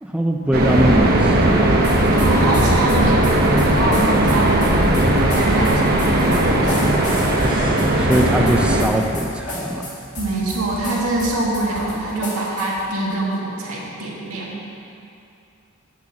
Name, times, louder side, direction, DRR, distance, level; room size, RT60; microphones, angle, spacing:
voice 1, 0.0-1.8 8.0-9.9, equal, 5° right, 1 dB, 0.4 m, -21 dB
sound 1, 0.5-8.8, right 1 dB, 45° right, 0.9 m, -17 dB
sound 2, 1.8-12.9, left 1 dB, 35° left, 1.6 m, -32 dB
voice 2, 1.8-7.0 10.2-14.6, right 2 dB, 80° right, -4 dB, 1.7 m, -25 dB
8.2 x 4.6 x 7.1 m, 2.6 s
head